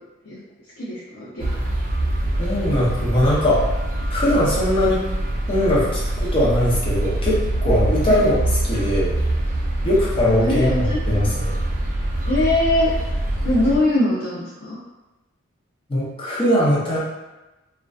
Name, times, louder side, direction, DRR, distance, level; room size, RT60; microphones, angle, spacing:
voice 1, 0.8-1.5 8.1-8.2 10.4-11.2 12.3-12.9 13.4-14.8, left 1 dB, 70° left, -7 dB, 0.5 m, -22 dB
sound 1, 1.4-13.8, right 1 dB, 35° right, 0.3 m, -24 dB
voice 2, 2.4-3.6 4.1-5.0 5.5-8.4 8.6-9.2 9.8-11.6 15.9-17.0, left 1 dB, 25° left, -7 dB, 0.5 m, -20 dB
2.5 x 2.2 x 2.3 m, 1.1 s
head